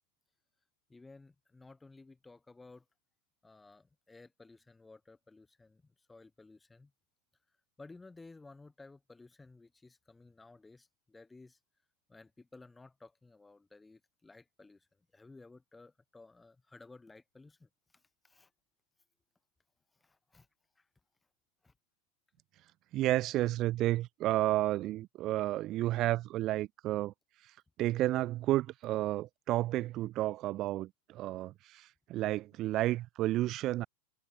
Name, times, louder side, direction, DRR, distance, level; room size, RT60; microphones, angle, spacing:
voice 1, 0.9-2.9 3.4-6.9 7.8-11.6 12.1-14.9 15.1-18.5 19.9-20.5 20.8-20.9 21.6-21.7, left 3 dB, 10° left, 8.0 m, -56 dB
voice 2, 22.9-27.1 27.4-33.9, right 15 dB, 35° right, 3.3 m, -31 dB
figure-of-eight pair, 90°, 0 cm